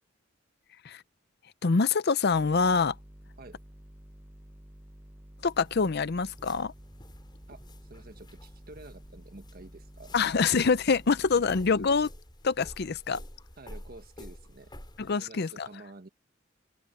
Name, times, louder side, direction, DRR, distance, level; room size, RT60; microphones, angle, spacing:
voice 1, 1.6-2.9 5.4-6.7 10.1-12.1 12.4-13.2 15.0-15.7, left 5 dB, 55° left, 0.6 m, -25 dB
sound 1, 2.3-12.1, equal, 10° right, 1.0 m, -51 dB
sound 2, 5.5-15.1, left 1 dB, 25° left, 4.8 m, -50 dB
voice 2, 7.9-10.1 11.3-11.5 13.6-14.7 15.1-16.1, right 2 dB, 50° right, 1.5 m, -49 dB
open air
head